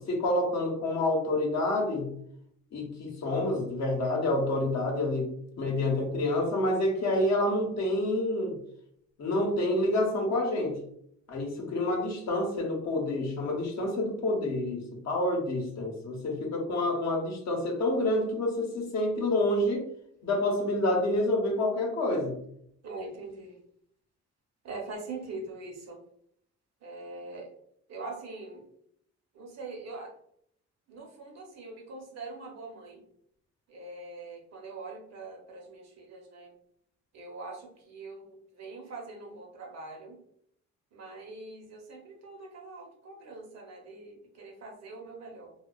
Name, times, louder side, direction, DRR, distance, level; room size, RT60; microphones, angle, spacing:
voice 1, 0.0-2.1 2.7-8.6 9.2-10.8 11.3-19.9 20.2-22.4, left 1 dB, 60° left, 0 dB, 0.8 m, -28 dB
voice 2, 22.8-23.6 24.6-26.0 26.8-27.5 27.9-28.6 29.3-30.2 30.9-33.0 33.7-36.5 37.1-40.2 40.9-45.5, right 3 dB, 60° right, 1 dB, 0.7 m, -43 dB
2.4 x 2.2 x 2.3 m, 0.70 s
cardioid pair, 90°, 30 cm